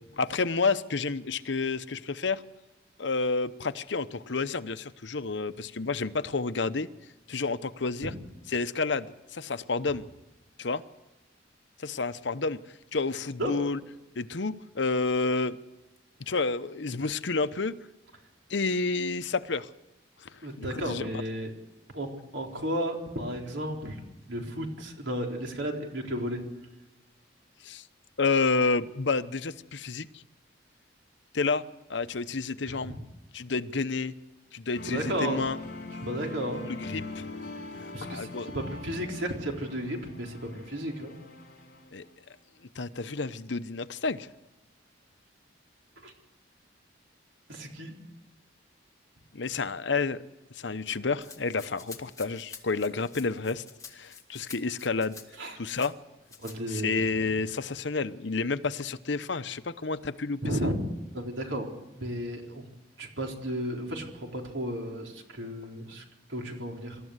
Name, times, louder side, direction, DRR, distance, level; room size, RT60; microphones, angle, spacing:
voice 1, 0.2-2.4 3.0-6.9 7.3-8.1 8.5-10.0 10.6-10.8 11.8-12.6 12.9-13.8 14.2-15.6 16.3-17.7 18.5-19.7 20.3-21.0 27.6-27.8 28.2-30.1 31.3-31.6 31.9-32.9 33.3-34.1 34.5-35.6 36.6-37.2 37.8-38.5 41.9-42.0 42.7-44.3 49.3-50.2 50.5-53.6 53.9-55.2 55.6-55.9 56.7-60.4, left 4 dB, 70° left, 13 dB, 0.9 m, -30 dB
voice 2, 20.4-21.5 21.9-24.0 24.3-26.4 32.7-33.0 34.9-35.4 36.0-36.6 37.9-41.2 46.0-46.1 47.5-47.9 55.4-55.6 56.4-57.2 60.4-60.7 61.1-61.7 61.9-62.6 63.0-66.0 66.3-67.0, equal, 75° right, 2 dB, 4.2 m, -33 dB
sound 1, 34.8-42.3, left 2 dB, 50° left, 3.2 m, -42 dB
Rattle (instrument), 51.2-55.9 56.3-56.6, left 6 dB, 15° left, 2.0 m, -48 dB
26.5 x 13.5 x 8.1 m, 1.1 s
head